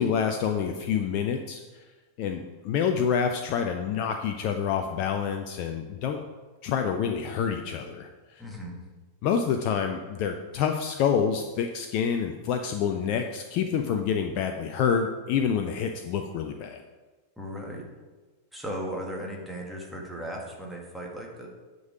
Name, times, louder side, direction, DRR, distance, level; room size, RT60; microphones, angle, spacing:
voice 1, 0.0-1.6 2.2-6.2 6.6-8.4 9.2-16.8, left 7 dB, 45° left, 5 dB, 0.6 m, -27 dB
voice 2, 8.4-8.8 17.4-17.9 18.5-21.5, equal, ahead, -2 dB, 1.9 m, -36 dB
9.5 x 5.4 x 4.9 m, 1.3 s
figure-of-eight pair, 90°, 0 cm